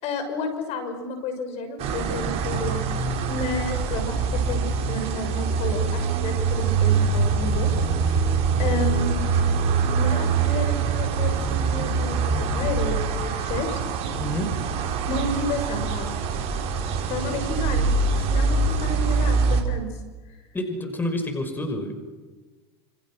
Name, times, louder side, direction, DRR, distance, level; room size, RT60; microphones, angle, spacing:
voice 1, 0.0-2.9 3.3-8.2 8.6-9.3 10.0-13.8 15.1-16.2 17.1-19.9, left 3 dB, 50° left, 7 dB, 6.3 m, -31 dB
sound 1, 1.8-19.6, right 5 dB, 50° right, 5.0 m, -24 dB
voice 2, 14.2-14.5 20.5-21.9, left 1 dB, 15° left, 6 dB, 5.7 m, -28 dB
29.5 x 28.0 x 6.4 m, 1.3 s
hypercardioid pair, 100°, 14 cm